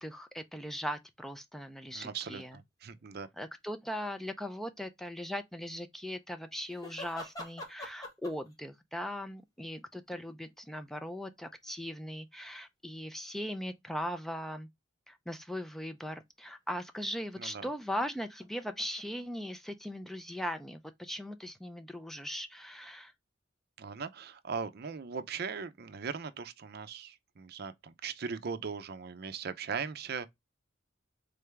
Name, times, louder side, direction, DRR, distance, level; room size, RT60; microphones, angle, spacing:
voice 1, 0.0-2.6 3.4-14.7 15.1-23.1, equal, ahead, 0.4 m, -39 dB
voice 2, 1.9-3.3 17.4-17.7 23.8-30.3, right 5 dB, 55° right, 0.5 m, -39 dB
sound 1, 2.4-2.5 6.7-8.5 9.6-10.7 11.4-11.5 12.4-12.5 17.3-19.7, left 1 dB, 20° left, 1.4 m, -46 dB
3.8 x 3.4 x 3.3 m
head